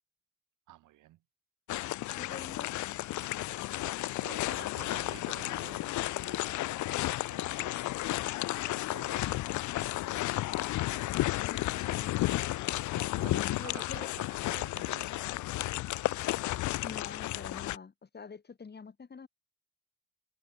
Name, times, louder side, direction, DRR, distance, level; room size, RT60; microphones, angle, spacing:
voice 1, 0.7-1.2 2.3-2.4 3.8-7.0 7.3-8.3 8.6-10.5 13.0-16.0, right 15 dB, 85° right, 2.8 m, -52 dB
sound 1, 1.7-17.8, left 17 dB, 75° left, 0.6 m, -33 dB
voice 2, 2.2-2.7 11.4-12.5 13.3-14.1 16.8-19.3, left 5 dB, 35° left, 3.2 m, -46 dB
cardioid pair, 90°, 30 cm